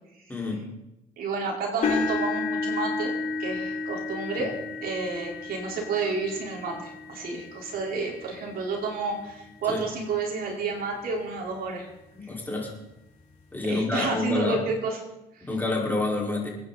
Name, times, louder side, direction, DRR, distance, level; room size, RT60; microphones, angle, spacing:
voice 1, 0.3-0.6 4.4-4.5 9.7-9.8 12.1-12.7 13.5-14.6 15.4-16.5, left 2 dB, 10° left, -3 dB, 5.1 m, -28 dB
voice 2, 1.2-3.1 3.4-4.5 4.8-11.9 13.6-15.0 15.3-15.5, right 4 dB, 60° right, -2 dB, 4.6 m, -30 dB
sound 1, 1.8-9.9 10.5-10.7 11.2-11.3 12.7-12.8, left 3 dB, 50° left, 5.6 m, -33 dB
25.0 x 9.6 x 4.2 m, 0.91 s
cardioid pair, 110°, 17 cm